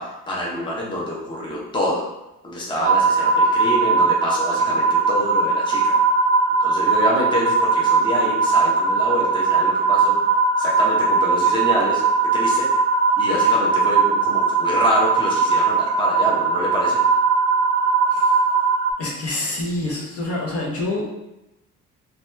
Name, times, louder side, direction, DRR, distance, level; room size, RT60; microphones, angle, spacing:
voice 1, 0.0-2.1 2.4-6.0 6.6-12.0 12.3-12.7 13.2-17.0, left 1 dB, 15° left, -4 dB, 0.7 m, -26 dB
sound 1, 2.8-18.9, right 4 dB, 35° right, 0.4 m, -19 dB
voice 2, 19.0-21.0, left 2 dB, 50° left, -3 dB, 0.9 m, -26 dB
2.8 x 2.3 x 3.2 m, 0.91 s
cardioid pair, 90°, 30 cm